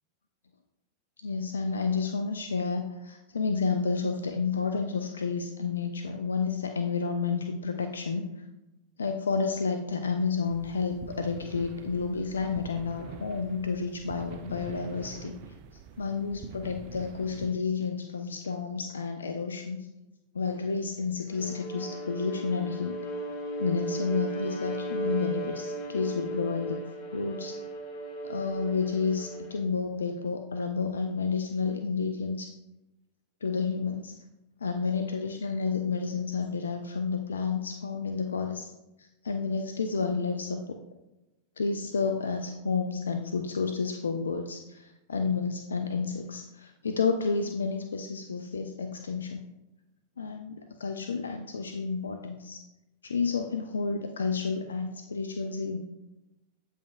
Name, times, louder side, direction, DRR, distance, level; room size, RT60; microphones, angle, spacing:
voice 1, 1.2-8.2 9.0-15.4 16.0-19.9 20.3-23.0 23.6-26.8 27.1-27.6 28.2-32.5 33.4-34.1 34.6-38.7 39.0-40.8 41.6-49.4 50.2-52.7 53.0-55.8, left 5 dB, 70° left, 6 dB, 0.4 m, -30 dB
sound 1, 10.4-17.5, right 8 dB, 45° right, 0.5 m, -46 dB
Bowed string instrument, 21.3-29.7, right 2 dB, 40° left, 1.1 m, -36 dB
8.3 x 5.6 x 2.4 m, 0.98 s
figure-of-eight pair, 90°, 0 cm